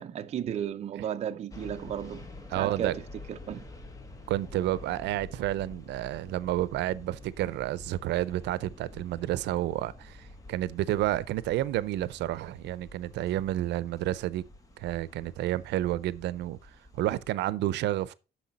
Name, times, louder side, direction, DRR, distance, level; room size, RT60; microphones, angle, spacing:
voice 1, 0.0-2.3 2.5-3.0 3.3-3.6, right 9 dB, 40° right, 0.5 m, -34 dB
sound 1, 1.5-17.4, left 2 dB, 20° left, 1.3 m, -48 dB
Fire, 2.4-13.2, left 4 dB, 75° left, 2.6 m, -61 dB
voice 2, 2.5-3.0 4.3-14.4 14.8-18.1, right 14 dB, 85° right, 0.5 m, -30 dB
9.8 x 6.8 x 4.0 m
cardioid pair, 165°, 18 cm